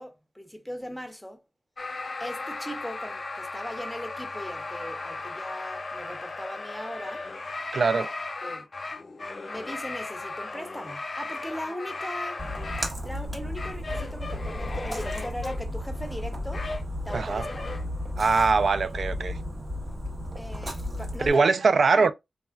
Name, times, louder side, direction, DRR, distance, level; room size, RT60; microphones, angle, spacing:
voice 1, 0.0-1.4 2.2-7.2 7.9-8.0 8.4-8.7 9.5-12.4 13.0-16.7 17.0-17.8 20.3-21.6 21.9-22.1, equal, ahead, 0.7 m, -39 dB
sound 1, 1.8-12.9 13.6-15.6 16.3-17.8, left 3 dB, 45° left, 0.4 m, -36 dB
voice 2, 7.7-8.1 17.1-17.5 18.2-19.4 21.2-22.1, right 4 dB, 65° right, 0.3 m, -22 dB
Splash splatter, 12.4-21.3, left 1 dB, 35° right, 0.9 m, -34 dB
3.2 x 2.4 x 2.2 m
cardioid pair, 75°, 0 cm